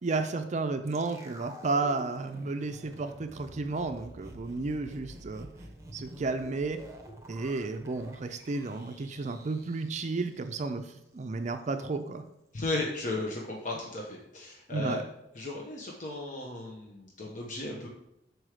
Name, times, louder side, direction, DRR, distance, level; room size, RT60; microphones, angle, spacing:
voice 1, 0.0-5.5 5.9-6.8 7.3-12.2 14.7-15.0, right 3 dB, 40° right, 8 dB, 0.4 m, -32 dB
sound 1, 0.9-11.0 11.3-11.4, right 1 dB, 15° right, 1.0 m, -49 dB
voice 2, 12.5-15.0 15.3-17.9, left 2 dB, 45° left, -1 dB, 1.0 m, -35 dB
6.2 x 4.7 x 4.9 m, 0.86 s
head